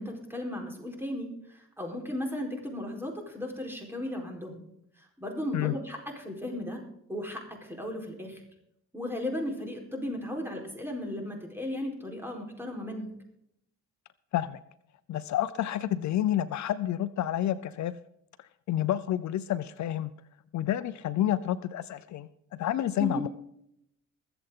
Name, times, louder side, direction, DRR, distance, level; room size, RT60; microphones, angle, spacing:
voice 1, 0.0-4.6 5.0-6.8 7.1-8.4 8.9-13.1 23.0-23.2, left 1 dB, 5° right, 2 dB, 4.3 m, -35 dB
voice 2, 15.1-17.9 18.4-20.1 20.5-22.3 22.6-23.3, left 12 dB, 65° left, 14 dB, 0.7 m, -29 dB
22.0 x 8.0 x 3.8 m, 0.76 s
cardioid pair, 90°, 30 cm